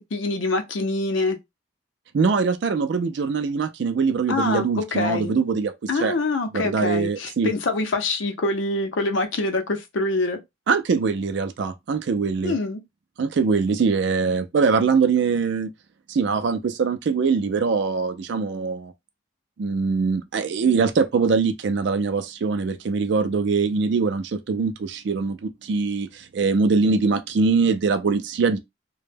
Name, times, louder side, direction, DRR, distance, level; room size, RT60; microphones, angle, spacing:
voice 1, 0.1-1.4 4.3-5.4 5.9-10.4 12.4-12.8, left 2 dB, 75° left, 0.6 m, -25 dB
voice 2, 2.1-6.1 6.5-7.5 10.7-12.5 13.2-15.7 16.1-18.9 19.6-28.6, right 4 dB, 65° right, 0.4 m, -22 dB
2.1 x 2.0 x 3.2 m
head